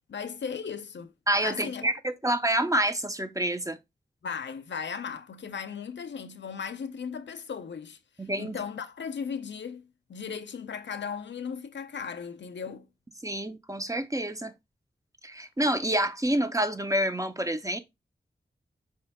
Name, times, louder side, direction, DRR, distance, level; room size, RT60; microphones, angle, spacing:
voice 1, 0.1-1.1 1.4-1.8 4.2-8.0 8.4-9.8 10.1-12.9, left 6 dB, 75° left, 0.5 m, -36 dB
voice 2, 1.3-3.8 8.2-8.5 13.2-14.5 15.2-17.8, right 1 dB, 20° right, 0.5 m, -28 dB
4.4 x 2.8 x 3.4 m
cardioid pair, 40°, 19 cm